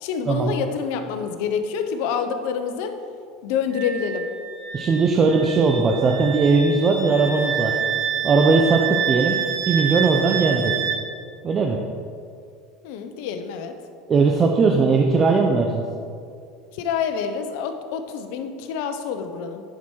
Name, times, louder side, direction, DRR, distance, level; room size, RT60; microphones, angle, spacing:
voice 1, 0.0-2.9 3.4-4.3 12.8-13.7 16.7-19.6, left 7 dB, 70° left, 7 dB, 0.8 m, -27 dB
Wind instrument woodwind instrument, 3.7-11.0, right 8 dB, 65° right, 1.1 m, -27 dB
voice 2, 4.7-7.8 8.2-9.3 9.7-10.8 11.4-11.8 14.1-15.8, right 4 dB, 30° right, 2 dB, 0.7 m, -19 dB
10.5 x 4.7 x 4.6 m, 2.3 s
supercardioid pair, 110°, 0 cm